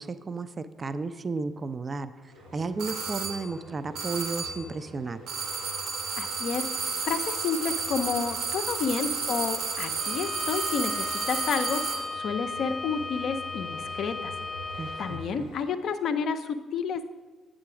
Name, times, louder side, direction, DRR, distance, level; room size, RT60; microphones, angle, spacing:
voice 1, 0.0-5.2 14.8-15.5, right 4 dB, 35° right, 13 dB, 0.3 m, -34 dB
sound 1, 2.3-15.6, equal, 85° right, 2.5 m, -46 dB
sound 2, 2.8-3.5 4.0-4.7 5.3-12.1, right 5 dB, 65° right, 0.9 m, -32 dB
voice 2, 6.2-14.3 15.0-17.1, left 6 dB, 60° left, 9 dB, 0.4 m, -30 dB
Bowed string instrument, 9.9-15.3, left 3 dB, 5° left, 0.7 m, -35 dB
8.1 x 3.8 x 5.9 m, 1.3 s
figure-of-eight pair, 40°, 0 cm